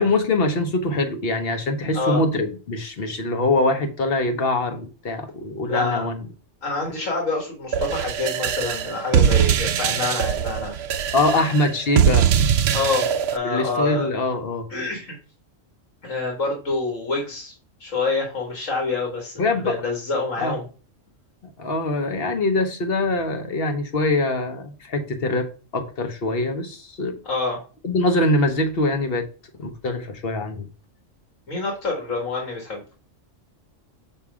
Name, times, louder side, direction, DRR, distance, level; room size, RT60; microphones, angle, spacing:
voice 1, 0.0-6.2 11.1-12.3 13.4-14.7 19.4-19.8 20.4-20.6 21.6-25.5 25.7-27.1 27.8-29.3 29.6-30.7, left 2 dB, 50° left, 1.1 m, -23 dB
voice 2, 5.7-6.1 6.6-10.8 12.7-14.1 14.7-15.2 16.0-17.5 17.8-20.7 27.3-27.6 31.5-32.8, left 3 dB, 90° left, 2.1 m, -27 dB
sound 1, 7.7-13.4, right 8 dB, 65° right, 0.8 m, -21 dB
7.1 x 2.9 x 4.8 m
omnidirectional pair, 1.3 m